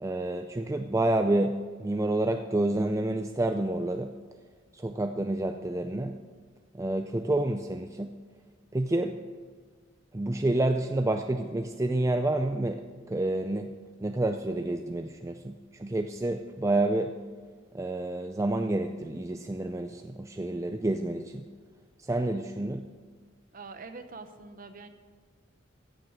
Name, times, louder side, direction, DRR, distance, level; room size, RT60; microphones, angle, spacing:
voice 1, 0.0-4.1 4.7-6.2 6.7-8.1 8.7-9.2 10.1-13.7 14.0-17.2 17.7-21.5 22.0-22.9, right 2 dB, 15° right, 6 dB, 0.4 m, -29 dB
voice 2, 23.5-24.9, right 4 dB, 45° right, 9 dB, 0.9 m, -44 dB
15.0 x 7.6 x 6.5 m, 1.5 s
head